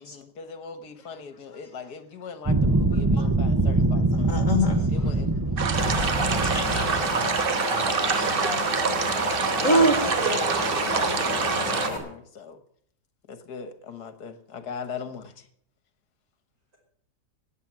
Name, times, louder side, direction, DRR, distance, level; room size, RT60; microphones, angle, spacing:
voice 1, 0.0-4.3 4.9-6.0 7.7-8.0 9.2-12.6 13.3-15.5, left 5 dB, 75° left, 10 dB, 1.9 m, -39 dB
sound 1, 2.5-7.4, right 2 dB, 25° right, 0.5 m, -24 dB
voice 2, 4.2-4.9 6.4-7.3 9.0-10.0, right 1 dB, 50° left, 6 dB, 2.3 m, -26 dB
sound 2, 5.6-11.9, right 6 dB, 40° right, 0.9 m, -26 dB
Wind, 5.7-12.0, left 1 dB, 15° left, 3.1 m, -30 dB
voice 3, 8.0-8.8 9.4-11.2, right 1 dB, 60° right, -1 dB, 6.1 m, -38 dB
18.0 x 8.2 x 7.4 m, 0.65 s
omnidirectional pair, 1.8 m